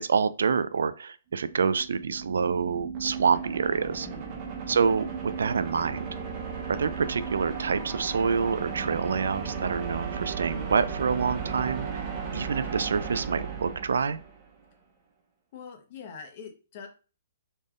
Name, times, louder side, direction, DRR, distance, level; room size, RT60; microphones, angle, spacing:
voice 1, 0.0-4.1 4.7-6.1 6.7-14.2, right 5 dB, 85° right, 14 dB, 0.3 m, -27 dB
sound 1, 1.5-14.5, right 6 dB, 35° right, 1.0 m, -35 dB
voice 2, 4.0-4.6 15.5-16.9, left 6 dB, 45° left, 4 dB, 1.0 m, -44 dB
4.2 x 3.4 x 2.4 m, 0.35 s
hypercardioid pair, 150°, 0 cm